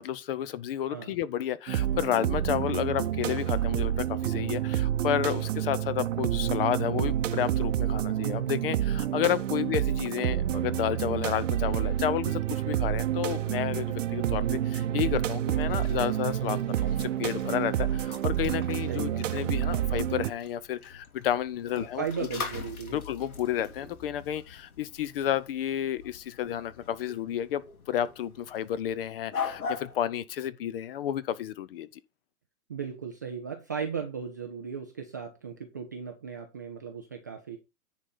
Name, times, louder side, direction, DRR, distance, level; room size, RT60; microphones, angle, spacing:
voice 1, 0.0-22.0 22.9-32.0, left 10 dB, 40° left, 0.7 m, -31 dB
sound 1, 1.7-20.3, right 11 dB, 60° right, 0.8 m, -29 dB
sound 2, 15.5-30.0, left 5 dB, 75° left, 2.9 m, -42 dB
voice 2, 18.9-19.2 21.7-23.0 32.7-37.6, right 6 dB, 15° right, 0.3 m, -36 dB
9.9 x 4.1 x 5.5 m
hypercardioid pair, 140°, 43 cm